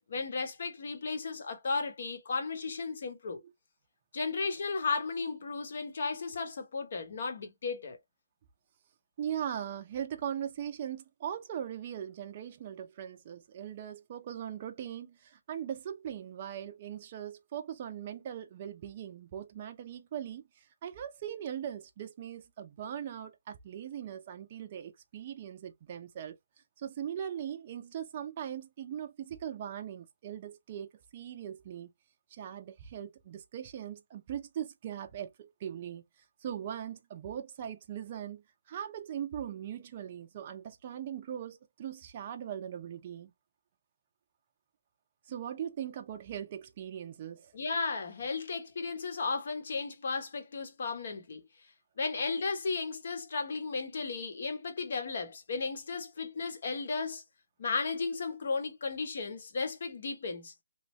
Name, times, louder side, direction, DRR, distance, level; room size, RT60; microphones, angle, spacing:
voice 1, 0.0-3.4 4.1-8.0 47.5-51.4 52.0-57.2 57.6-60.5, left 4 dB, 50° left, 1.1 m, -34 dB
voice 2, 9.2-26.4 26.8-31.9 32.3-43.3 45.3-47.5, right 9 dB, 30° right, 0.5 m, -40 dB
3.1 x 2.6 x 3.1 m
hypercardioid pair, 165°, 0 cm